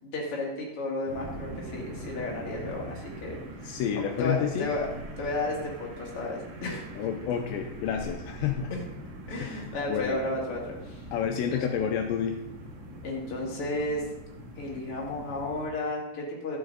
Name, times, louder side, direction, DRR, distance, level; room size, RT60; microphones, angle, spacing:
voice 1, 0.0-3.4 3.9-4.9 5.2-6.8 9.3-11.0 11.5-11.7 13.0-14.0 14.5-16.6, left 2 dB, 50° left, -3 dB, 1.7 m, -33 dB
sound 1, 1.0-15.7, right 1 dB, 65° right, 3.1 m, -42 dB
voice 2, 3.6-4.7 7.0-8.7 9.4-10.2 11.1-12.4, left 8 dB, 85° left, 3 dB, 2.6 m, -30 dB
12.5 x 7.9 x 4.0 m, 0.88 s
omnidirectional pair, 5.7 m